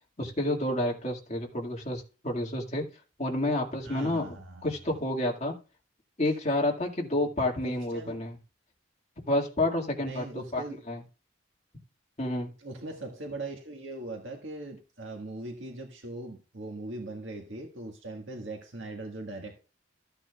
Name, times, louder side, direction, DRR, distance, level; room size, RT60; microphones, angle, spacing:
voice 1, 0.2-2.9 3.2-4.4 4.6-5.6 6.2-8.4 9.3-10.3 10.5-11.0 12.2-12.5, left 1 dB, 35° left, 2.0 m, -29 dB
voice 2, 3.8-4.8 7.6-8.2 10.0-10.8 12.6-19.6, right 2 dB, 75° right, 1.6 m, -40 dB
14.0 x 8.8 x 2.3 m
head